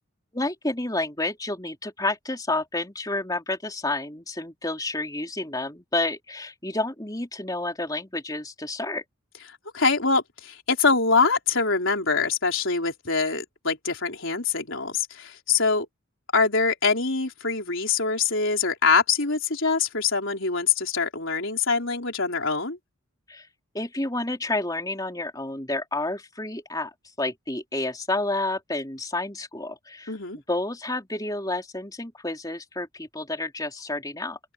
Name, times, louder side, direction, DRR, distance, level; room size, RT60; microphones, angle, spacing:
voice 1, 0.3-9.0 23.3-23.5 23.7-34.4, left 2 dB, 15° left, 4.0 m, -30 dB
voice 2, 9.7-15.9 16.3-22.8 30.1-30.4, left 4 dB, 65° left, 4.1 m, -24 dB
open air
head